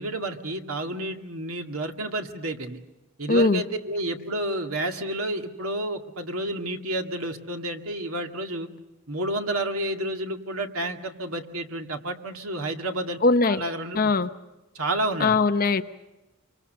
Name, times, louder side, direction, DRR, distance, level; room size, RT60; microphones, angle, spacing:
voice 1, 0.0-2.8 3.2-8.7 9.1-13.2 13.5-14.1 14.7-15.4, right 1 dB, 75° right, 5 dB, 2.2 m, -30 dB
voice 2, 3.3-3.6 13.2-13.6 13.9-14.3 15.2-15.8, left 3 dB, 40° left, 10 dB, 0.8 m, -20 dB
27.5 x 24.5 x 6.8 m, 1.0 s
head